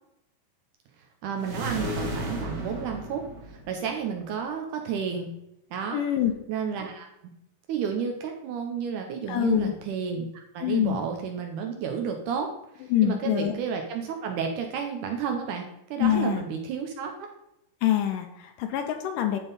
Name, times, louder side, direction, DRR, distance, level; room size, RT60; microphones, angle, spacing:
voice 1, 1.2-5.3 5.7-6.0 6.5-7.1 7.7-17.3, right 6 dB, 75° right, 4 dB, 2.0 m, -31 dB
sound 1, 1.4-4.0, right 1 dB, 55° right, 2.9 m, -33 dB
voice 2, 5.9-6.3 9.3-9.7 10.6-11.0 12.9-13.5 16.0-16.4 17.8-19.4, left 11 dB, 80° left, 6 dB, 2.1 m, -25 dB
11.0 x 3.6 x 4.0 m, 0.81 s
omnidirectional pair, 4.1 m